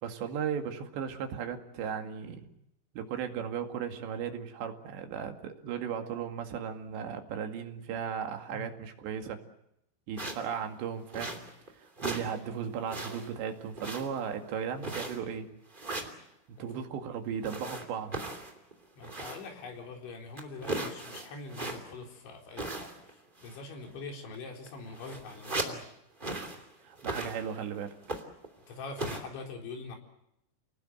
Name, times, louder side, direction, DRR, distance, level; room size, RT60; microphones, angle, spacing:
voice 1, 0.0-2.5 3.0-9.4 10.1-11.4 11.8-15.5 16.6-18.3 26.8-28.0, right 7 dB, 70° right, 5 dB, 4.3 m, -36 dB
sound 1, 10.2-10.5 11.1-11.7 12.0-12.4 12.6-13.4 13.8-14.3 14.8-15.3 15.7-16.2 17.4-19.6 19.9-20.0 20.4-22.0 22.6-23.1 23.4-23.7 24.3-24.4 24.7-25.8 26.2-26.7 27.0-27.7 28.0-28.5 29.0-29.2, right 2 dB, 15° right, 1.9 m, -37 dB
voice 2, 19.0-25.8 28.7-30.0, left 3 dB, 75° left, 2 dB, 6.4 m, -43 dB
29.5 x 20.0 x 7.8 m, 0.81 s
omnidirectional pair, 5.4 m